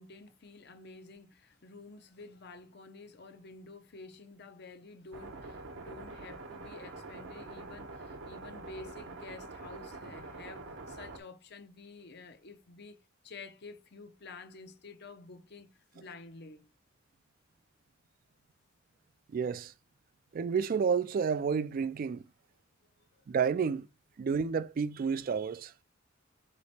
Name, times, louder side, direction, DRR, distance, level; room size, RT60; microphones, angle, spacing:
voice 1, 0.0-13.0 13.2-16.7 23.0-23.2, left 3 dB, 55° left, 0.6 m, -50 dB
sound 1, 5.1-11.2, right 3 dB, 75° right, 0.8 m, -45 dB
voice 2, 19.3-19.7 20.3-22.2 23.3-23.9 24.2-25.7, right 6 dB, 45° right, 0.3 m, -30 dB
4.2 x 3.0 x 4.1 m
head